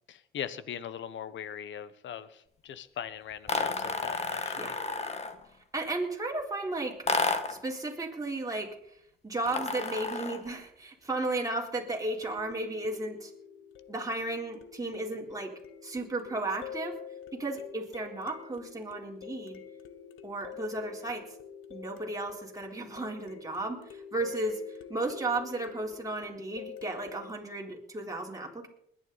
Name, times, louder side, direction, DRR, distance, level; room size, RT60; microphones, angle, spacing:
voice 1, 0.1-4.8, left 9 dB, 70° left, 14 dB, 1.2 m, -40 dB
sound 1, 3.5-5.4 7.1-7.7 9.5-10.5, left 4 dB, 30° left, 1.7 m, -31 dB
voice 2, 5.7-7.0 7.5-8.7 9.2-13.3 13.9-15.5 15.8-16.9 17.3-19.6 20.2-21.2 21.7-24.6 24.9-28.7, right 2 dB, 15° right, -1 dB, 3.9 m, -34 dB
sound 2, 12.2-27.4, left 8 dB, 90° left, 1.3 m, -47 dB
21.0 x 11.0 x 4.1 m, 0.72 s
cardioid pair, 90°, 20 cm